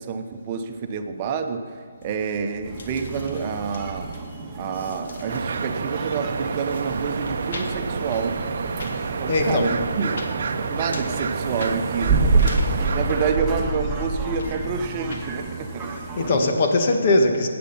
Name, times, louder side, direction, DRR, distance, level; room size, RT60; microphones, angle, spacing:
voice 1, 0.0-1.6 2.0-4.1 4.6-8.4 9.2-10.3 10.7-16.5, right 5 dB, 30° right, 6 dB, 1.0 m, -28 dB
sound 1, 2.0-15.3, left 2 dB, 60° left, 1.9 m, -41 dB
sound 2, 2.6-16.3, right 3 dB, 10° right, 1.9 m, -29 dB
sound 3, 5.3-13.4, right 5 dB, 55° right, 0.7 m, -29 dB
voice 2, 8.9-9.7 16.2-17.5, left 2 dB, 45° left, 3 dB, 1.6 m, -21 dB
15.5 x 8.7 x 5.6 m, 2.2 s
figure-of-eight pair, 145°, 0 cm